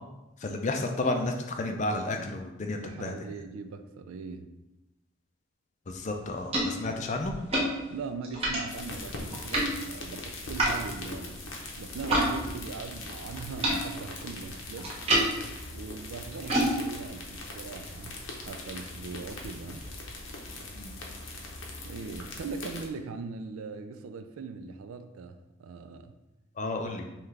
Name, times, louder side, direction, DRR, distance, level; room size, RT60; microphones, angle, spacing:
voice 1, 0.4-3.1 5.9-7.3 20.7-20.9 26.6-27.1, left 2 dB, 35° left, 4 dB, 0.4 m, -31 dB
voice 2, 2.7-4.5 7.9-11.4 11.8-15.0 15.7-19.9 21.8-26.1, right 4 dB, 90° right, 9 dB, 0.4 m, -40 dB
sound 1, 5.9-12.3 12.6-18.5, right 1 dB, 30° right, 0.8 m, -32 dB
sound 2, 8.7-22.9, left 2 dB, 80° left, 0.7 m, -41 dB
5.5 x 2.4 x 3.2 m, 0.99 s
head